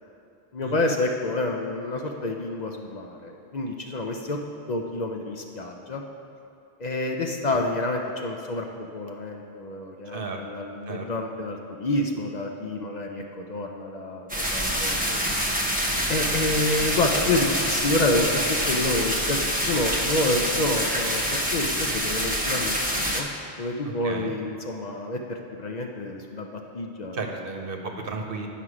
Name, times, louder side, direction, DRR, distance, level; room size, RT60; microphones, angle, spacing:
voice 1, 0.5-4.4 4.7-6.0 6.8-15.2 16.1-23.3 23.6-27.2 27.5-27.6, left 2 dB, 50° left, 2 dB, 0.6 m, -28 dB
sound 1, 14.3-23.2, equal, 10° right, 0.7 m, -26 dB
voice 2, 23.8-24.3 27.1-28.5, right 4 dB, 60° right, 2 dB, 1.0 m, -33 dB
9.5 x 5.8 x 4.9 m, 2.6 s
omnidirectional pair, 1.1 m